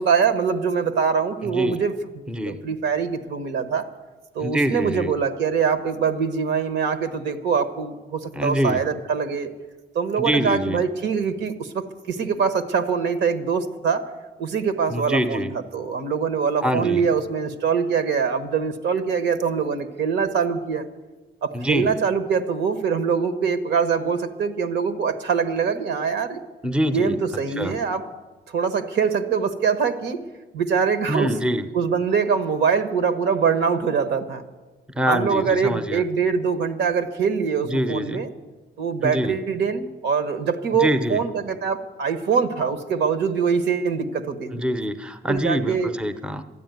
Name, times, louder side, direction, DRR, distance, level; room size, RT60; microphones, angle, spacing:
voice 1, 0.0-1.9 2.5-3.9 4.3-9.5 9.9-14.1 14.4-15.5 15.7-20.9 21.4-26.4 26.9-28.0 28.5-30.2 30.5-31.3 31.7-34.4 35.1-38.3 38.8-44.5 45.3-45.9, right 6 dB, 75° right, 10 dB, 1.2 m, -23 dB
voice 2, 1.4-1.8 2.3-2.6 4.4-5.1 8.4-8.8 10.2-10.8 14.9-15.5 16.6-17.0 21.5-21.9 26.6-27.2 27.6-27.8 31.1-31.7 34.9-36.0 37.7-38.2 39.0-39.4 40.8-41.2 44.5-46.4, equal, 5° right, 10 dB, 0.7 m, -25 dB
13.0 x 10.0 x 9.3 m, 1.3 s
cardioid pair, 135°, 18 cm